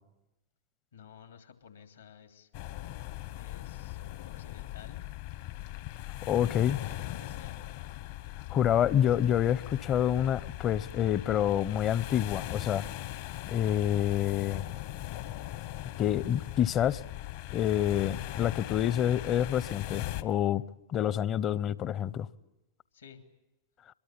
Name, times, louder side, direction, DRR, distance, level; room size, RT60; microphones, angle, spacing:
voice 1, 0.9-2.5 3.3-5.0 6.4-7.6 22.9-23.2, left 7 dB, 75° left, 2.9 m, -54 dB
sound 1, 2.5-20.2, left 15 dB, 55° left, 1.3 m, -39 dB
voice 2, 6.3-6.8 8.5-12.9 13.5-14.6 16.0-17.0 17.5-20.6 20.9-22.3, left 10 dB, 35° left, 0.8 m, -27 dB
23.5 x 22.0 x 9.0 m
figure-of-eight pair, 95°, 0 cm